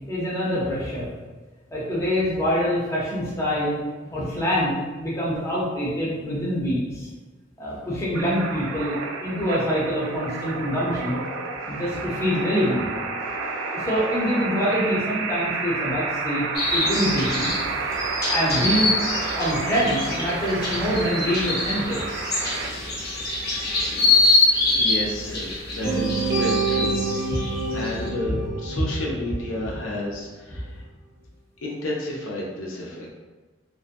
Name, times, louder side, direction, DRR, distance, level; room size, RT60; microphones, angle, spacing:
voice 1, 0.1-1.1 1.7-3.8 4.1-7.1 7.6-11.2 11.6-12.9 13.7-16.5 16.7-17.5 18.3-19.0 19.3-22.0 27.7-27.8, equal, 15° left, -7 dB, 0.6 m, -25 dB
sound 1, 8.1-22.7, right 4 dB, 85° right, 0.3 m, -30 dB
sound 2, 16.5-28.1, left 2 dB, 50° left, 0.7 m, -25 dB
voice 2, 24.7-27.0 27.7-30.8 31.6-33.1, left 1 dB, 85° left, -2 dB, 0.5 m, -31 dB
sound 3, 25.8-29.9, right 3 dB, 55° right, 0.7 m, -27 dB
2.6 x 2.1 x 2.5 m, 1.3 s
head